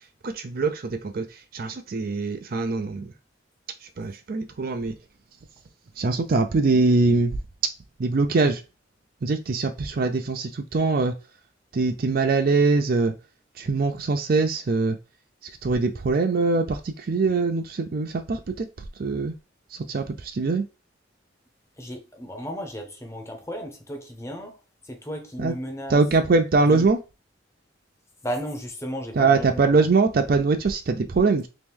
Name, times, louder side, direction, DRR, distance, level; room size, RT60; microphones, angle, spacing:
voice 1, 0.2-1.2 1.5-3.1 4.0-4.9 6.0-7.3 8.0-8.6 9.2-11.1 11.7-13.1 13.6-15.0 15.6-18.7 19.0-19.3 19.9-20.6 25.4-25.5 25.9-27.0 29.2-31.5, right 3 dB, 50° right, 0.4 m, -22 dB
voice 2, 21.8-26.0 26.7-26.9 28.2-29.9, equal, 15° left, 0.8 m, -34 dB
3.0 x 3.0 x 3.5 m
head